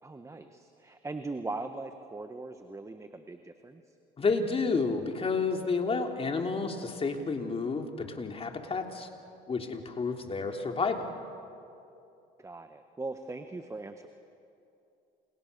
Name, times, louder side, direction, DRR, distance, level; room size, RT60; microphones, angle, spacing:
voice 1, 0.0-3.8 12.4-14.1, right 3 dB, 15° right, 8 dB, 1.5 m, -40 dB
voice 2, 4.2-9.1 9.5-11.1, left 4 dB, 30° left, 4 dB, 3.3 m, -30 dB
29.0 x 28.5 x 6.9 m, 2.7 s
supercardioid pair, 85°, 19 cm